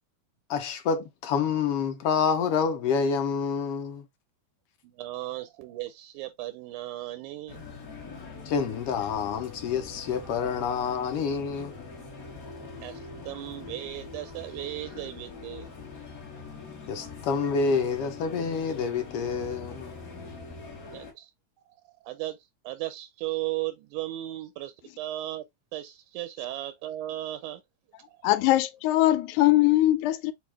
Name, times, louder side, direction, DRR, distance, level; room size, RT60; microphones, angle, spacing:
voice 1, 0.5-4.0 8.5-11.7 16.9-19.9, left 5 dB, 70° left, 1.4 m, -28 dB
voice 2, 4.8-7.6 12.8-15.7 20.9-21.3 22.0-22.4 22.6-25.4 25.7-27.6 27.9-28.2, right 15 dB, 90° right, 2.1 m, -36 dB
sound 1, 7.5-21.1, left 4 dB, 45° left, 1.2 m, -43 dB
voice 3, 28.2-30.3, left 15 dB, 90° left, 2.0 m, -21 dB
6.1 x 2.3 x 3.3 m
omnidirectional pair, 3.4 m